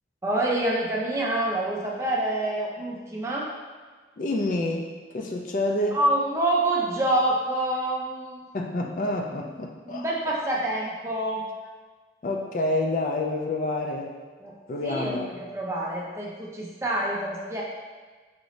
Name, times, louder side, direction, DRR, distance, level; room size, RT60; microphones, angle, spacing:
voice 1, 0.2-3.5 5.9-8.5 9.9-11.4 14.4-14.5 14.8-17.6, right 1 dB, 15° right, -3 dB, 0.5 m, -27 dB
voice 2, 4.2-6.0 8.5-10.1 12.2-14.1 14.7-15.3, left 2 dB, 45° left, 1 dB, 0.3 m, -28 dB
4.9 x 2.6 x 3.1 m, 1.4 s
head